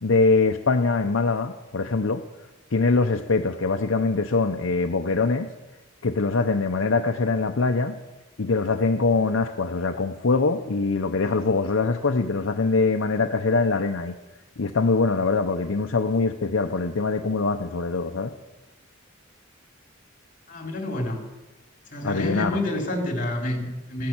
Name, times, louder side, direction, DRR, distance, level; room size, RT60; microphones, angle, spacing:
voice 1, 0.0-2.2 2.7-5.5 6.0-8.0 8.4-14.2 14.6-18.3 22.0-22.6, left 3 dB, 70° left, 5 dB, 0.7 m, -23 dB
voice 2, 20.5-21.3 21.9-24.1, left 1 dB, 40° left, 3 dB, 3.2 m, -28 dB
14.5 x 10.5 x 8.8 m, 1.1 s
head